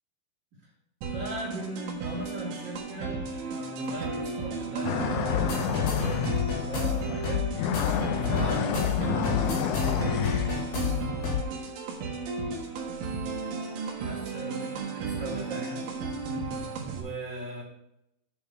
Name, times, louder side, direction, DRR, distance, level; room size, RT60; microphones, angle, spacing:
sound 1, 1.0-17.0, right 4 dB, 85° right, 3.8 m, -34 dB
voice 1, 1.1-5.9 6.5-7.5 8.1-9.7 14.0-15.9 16.9-17.6, right 1 dB, 35° right, -7 dB, 1.9 m, -38 dB
sound 2, 4.8-6.5 7.0-7.3 7.6-10.5, left 7 dB, 85° left, 3.3 m, -29 dB
sound 3, 5.3-11.4, left 7 dB, 60° left, 3.4 m, -30 dB
9.1 x 5.3 x 6.7 m, 0.83 s
omnidirectional pair, 5.3 m